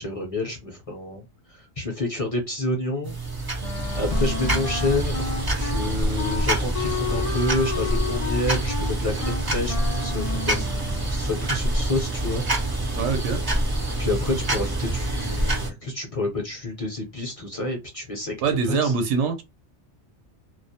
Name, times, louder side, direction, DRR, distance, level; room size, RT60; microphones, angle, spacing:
voice 1, 0.0-3.1 4.0-5.2 5.6-12.4 14.0-18.4 18.6-18.9, left 2 dB, 40° left, 0.6 m, -29 dB
sound 1, 3.0-15.7, right 1 dB, 30° right, 0.4 m, -26 dB
Wind instrument woodwind instrument, 3.6-11.2, left 5 dB, 80° left, 0.3 m, -32 dB
voice 2, 12.9-13.4 18.4-19.4, right 5 dB, 85° right, 0.9 m, -23 dB
2.3 x 2.0 x 2.6 m
omnidirectional pair, 1.2 m